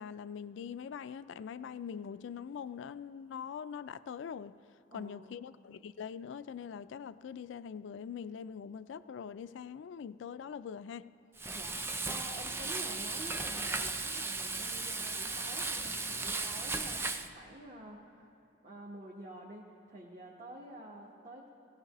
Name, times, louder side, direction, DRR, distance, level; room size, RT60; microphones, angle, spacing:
voice 1, 0.0-4.6 4.9-11.1, left 7 dB, 70° left, 15 dB, 0.3 m, -43 dB
voice 2, 4.9-5.3 11.5-18.3 18.6-21.5, right 1 dB, 40° right, -3 dB, 1.0 m, -49 dB
Frying (food), 11.4-17.3, right 3 dB, 10° right, 0.3 m, -36 dB
17.0 x 16.5 x 3.0 m, 2.6 s
head